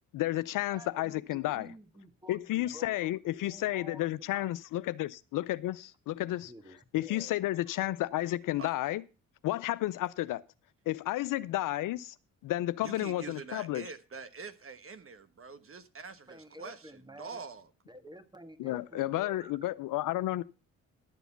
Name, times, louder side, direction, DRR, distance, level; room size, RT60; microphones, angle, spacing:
voice 1, 0.1-1.7 2.3-6.5 6.9-9.0 9.4-10.4 10.9-12.1 12.4-13.8 18.6-20.4, left 15 dB, 60° left, 0.5 m, -32 dB
voice 2, 0.7-4.6 6.1-7.3 16.3-17.4 17.9-19.5, equal, 10° right, 1.6 m, -51 dB
voice 3, 12.8-17.7, right 5 dB, 35° right, 1.2 m, -45 dB
11.5 x 7.0 x 5.7 m
hypercardioid pair, 45°, 37 cm